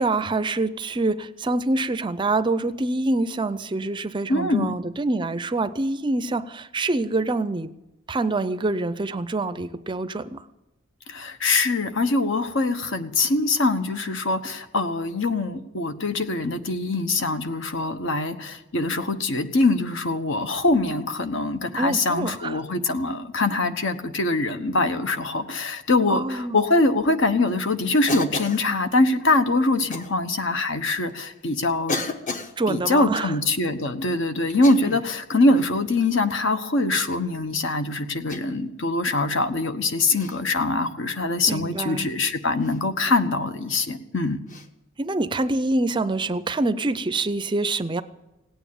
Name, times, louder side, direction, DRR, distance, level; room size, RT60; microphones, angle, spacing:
voice 1, 0.0-7.7 8.1-10.4 21.8-22.6 26.1-26.6 32.6-33.3 41.5-42.1 45.0-48.0, right 2 dB, 25° right, 13 dB, 0.5 m, -25 dB
voice 2, 4.3-4.8 11.1-32.0 32.7-44.4, left 2 dB, 65° left, 8 dB, 1.2 m, -23 dB
Cough, 28.1-28.7 29.9-30.1 31.0-31.1 31.9-32.5 34.5-35.1 35.5-35.8 36.9-37.3 38.3-38.7 40.1-40.4 42.6-42.8 44.5-44.7, left 3 dB, 40° left, 1.1 m, -32 dB
17.5 x 9.2 x 8.8 m, 0.99 s
head